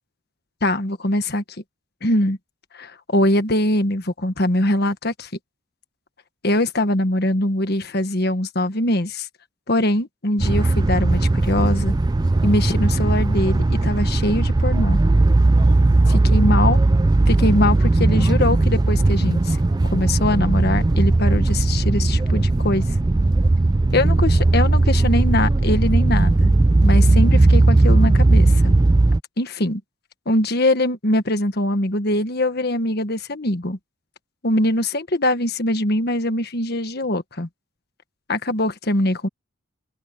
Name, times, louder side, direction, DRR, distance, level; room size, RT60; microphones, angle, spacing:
voice 1, 0.6-1.4 2.0-2.4 2.7-5.3 6.4-9.3 9.7-11.9 12.4-15.0 16.1-16.8 17.3-19.6 19.9-22.9 23.9-26.5 26.8-28.7 29.4-29.8 30.3-33.8 34.4-37.5 38.3-39.3, left 1 dB, 50° left, 1.5 m, -22 dB
sound 1, 10.4-29.2, right 2 dB, 20° right, 0.3 m, -17 dB
head